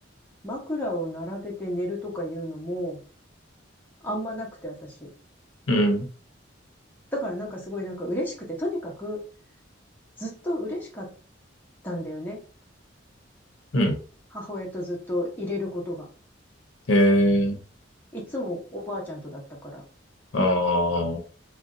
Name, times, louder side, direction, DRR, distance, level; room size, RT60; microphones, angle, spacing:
voice 1, 0.4-3.0 4.0-5.1 7.1-9.2 10.2-11.1 11.8-12.4 14.3-16.0 18.1-19.8, left 1 dB, 10° left, -3 dB, 1.0 m, -32 dB
voice 2, 5.7-6.1 13.7-14.0 16.9-17.6 20.3-21.2, equal, 80° left, 4 dB, 0.7 m, -21 dB
2.6 x 2.2 x 3.7 m, 0.39 s
head